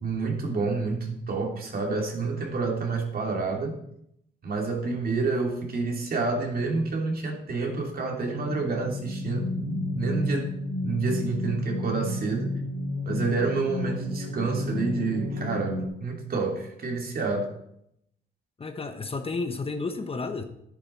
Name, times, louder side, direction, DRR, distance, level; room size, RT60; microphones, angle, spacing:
voice 1, 0.0-3.8 4.4-10.5 10.8-12.5 13.0-17.5, right 4 dB, 50° right, 1 dB, 2.8 m, -28 dB
sound 1, 7.8-15.9, left 2 dB, 80° right, 3.7 m, -32 dB
voice 2, 18.6-20.4, left 3 dB, 30° left, 7 dB, 1.1 m, -31 dB
10.5 x 10.0 x 4.3 m, 0.75 s
cardioid pair, 90°, 20 cm